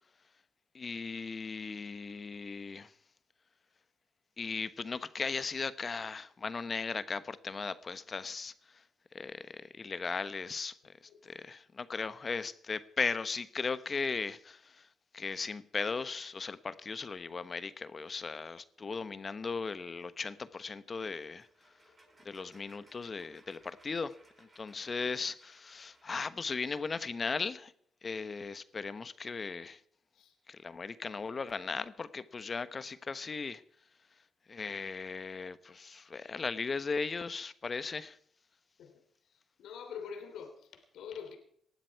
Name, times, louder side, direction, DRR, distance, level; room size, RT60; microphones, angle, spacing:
voice 1, 0.7-2.9 4.4-8.8 9.1-11.0 11.2-14.9 15.1-21.5 22.2-27.7 28.0-29.8 30.5-33.6 34.5-38.2, left 4 dB, 35° left, 1.0 m, -37 dB
voice 2, 11.1-11.4 30.1-30.3 38.8-39.0 39.6-41.4, left 7 dB, 80° left, 3.1 m, -45 dB
sound 1, 21.2-26.9, right 1 dB, 30° right, 7.8 m, -64 dB
19.0 x 12.5 x 4.7 m
cardioid pair, 90°, 0 cm